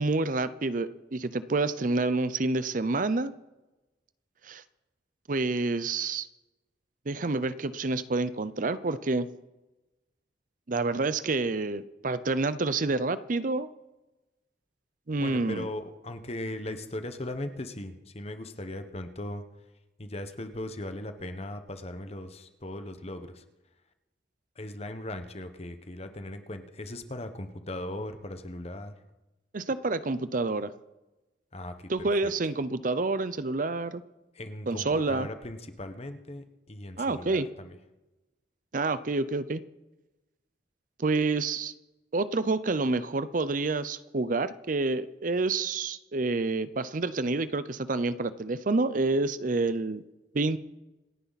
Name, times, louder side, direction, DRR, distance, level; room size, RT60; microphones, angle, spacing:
voice 1, 0.0-3.3 4.4-4.6 5.3-6.3 7.1-9.3 10.7-13.7 15.1-15.7 29.5-30.7 31.9-34.0 34.7-35.3 37.0-37.5 38.7-39.6 41.0-41.7 42.1-50.0 50.3-50.6, right 3 dB, 45° right, 14 dB, 0.6 m, -28 dB
voice 2, 15.2-19.4 20.0-23.4 24.6-28.9 31.5-32.3 34.3-37.7, left 1 dB, 35° left, 8 dB, 1.2 m, -38 dB
27.5 x 9.9 x 4.1 m, 1.0 s
head